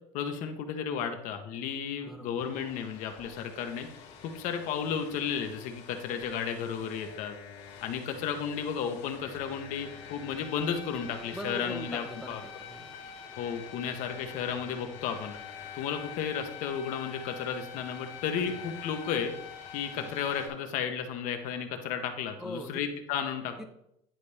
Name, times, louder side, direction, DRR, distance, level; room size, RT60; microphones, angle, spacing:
voice 1, 0.1-3.9 4.3-7.3 7.8-12.4 13.4-15.3 15.7-19.3 19.7-23.5, left 7 dB, 55° left, 6 dB, 1.0 m, -33 dB
voice 2, 2.0-2.4 11.3-13.0 18.3-18.6 19.9-20.1 22.4-22.8 23.6-23.7, equal, 5° right, 2 dB, 0.6 m, -42 dB
sound 1, 2.4-20.5, left 7 dB, 75° left, 2.0 m, -46 dB
10.5 x 4.2 x 3.4 m, 0.78 s
cardioid pair, 135°, 15 cm